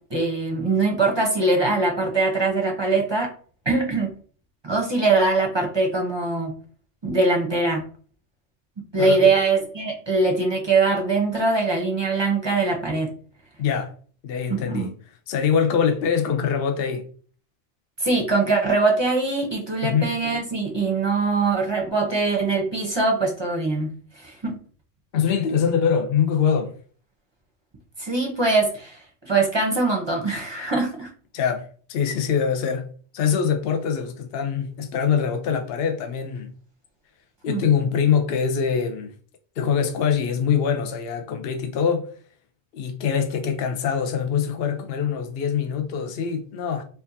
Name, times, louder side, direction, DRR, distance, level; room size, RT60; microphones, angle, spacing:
voice 1, 0.1-3.3 3.7-4.1 4.6-6.5 7.0-7.8 8.8-13.1 14.5-14.9 18.0-23.9 24.2-24.6 28.0-31.1 37.5-37.7, right 3 dB, 25° right, 0.6 m, -22 dB
voice 2, 9.0-9.3 13.6-13.9 14.2-14.9 15.3-17.1 19.8-20.1 25.1-26.7 31.3-32.9 33.1-36.5 37.4-39.1 39.6-42.1 42.7-46.8, left 7 dB, 55° left, 0.8 m, -23 dB
4.5 x 2.4 x 2.6 m
omnidirectional pair, 1.3 m